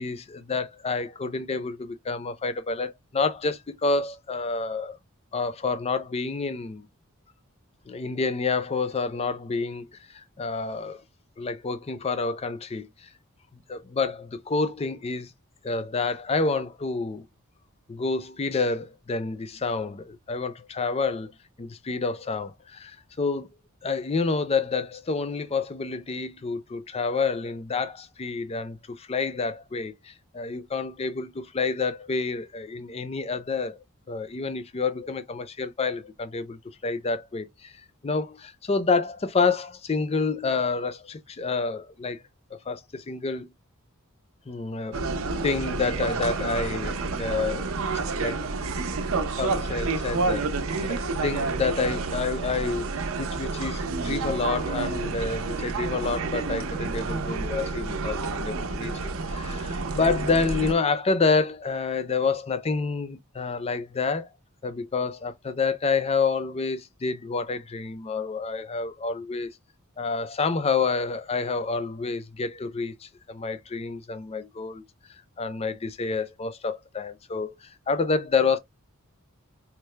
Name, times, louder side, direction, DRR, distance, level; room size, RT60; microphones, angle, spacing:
voice 1, 0.0-5.0 5.3-6.9 7.9-11.0 11.4-13.1 13.5-15.3 15.6-17.3 17.9-21.3 21.6-23.5 23.8-37.7 38.0-42.2 42.5-43.5 44.5-45.0 45.4-47.7 48.2-48.8 49.4-64.3 64.6-69.6 70.0-74.8 75.4-78.6, left 4 dB, 30° left, 0.4 m, -28 dB
sound 1, 44.9-60.7, right 3 dB, 70° right, 0.6 m, -29 dB
4.5 x 2.0 x 3.2 m
head